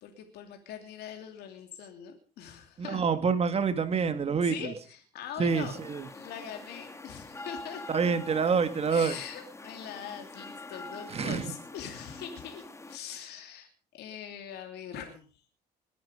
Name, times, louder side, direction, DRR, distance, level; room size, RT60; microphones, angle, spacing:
voice 1, 0.0-3.0 4.4-5.8 6.1-7.8 8.9-15.2, left 8 dB, 75° left, 5 dB, 2.9 m, -42 dB
voice 2, 2.8-4.5 5.4-6.1 7.9-9.2 11.1-11.5, right 5 dB, 35° right, 10 dB, 2.0 m, -27 dB
sound 1, 5.5-13.0, left 2 dB, 15° left, 1.7 m, -45 dB
21.5 x 11.0 x 5.0 m, 0.40 s
cardioid pair, 110°, 17 cm